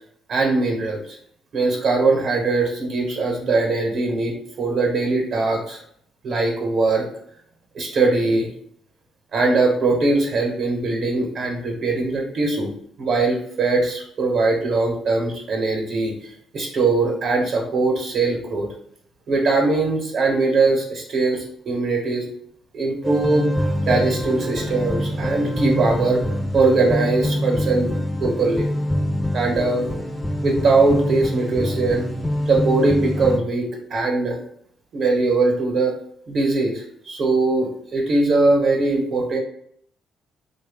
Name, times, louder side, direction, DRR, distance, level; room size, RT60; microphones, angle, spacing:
voice 1, 0.3-1.2 1.5-5.8 6.2-7.1 7.7-8.5 9.3-12.7 13.0-18.7 19.3-22.3 22.7-26.3 26.5-27.9 28.2-28.7 29.3-30.0 30.4-32.1 32.5-34.4 34.9-35.9 36.3-39.4, right 3 dB, 65° right, 0 dB, 0.8 m, -21 dB
sound 1, 23.0-33.4, equal, 15° left, 0.5 m, -25 dB
3.3 x 2.2 x 3.4 m, 0.68 s
cardioid pair, 90°, 0 cm